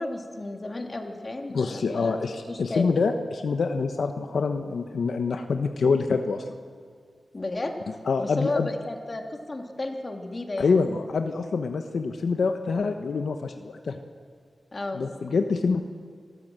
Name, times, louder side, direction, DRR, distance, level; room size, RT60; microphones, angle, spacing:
voice 1, 0.0-2.2 2.5-3.0 7.3-7.7 8.2-10.9 14.7-15.0, left 2 dB, 40° left, 3 dB, 2.4 m, -33 dB
voice 2, 1.5-6.4 8.1-8.7 10.6-14.0 14.9-15.8, left 4 dB, 85° left, 6 dB, 1.0 m, -26 dB
27.0 x 13.5 x 7.6 m, 2.1 s
wide cardioid pair, 75°, 0 cm